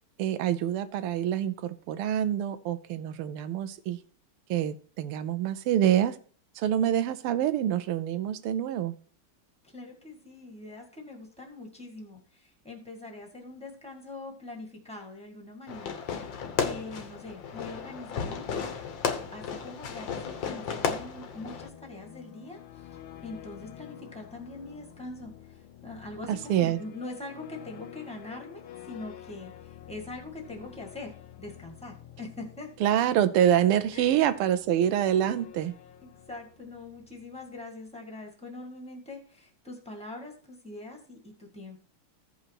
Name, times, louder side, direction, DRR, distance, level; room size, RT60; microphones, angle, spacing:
voice 1, 0.2-4.0 4.5-6.2 6.6-8.9 26.3-26.8 32.8-35.8, right 10 dB, 85° right, 13 dB, 1.6 m, -26 dB
voice 2, 9.6-16.3 16.6-18.7 19.3-32.9 33.9-34.1 36.0-41.8, left 2 dB, 5° left, 1 dB, 1.6 m, -43 dB
Fireworks, 15.7-21.7, left 6 dB, 65° left, 1.6 m, -34 dB
sound 1, 21.2-37.7, left 11 dB, 80° left, 1.6 m, -49 dB
15.5 x 5.6 x 2.9 m, 0.43 s
omnidirectional pair, 2.4 m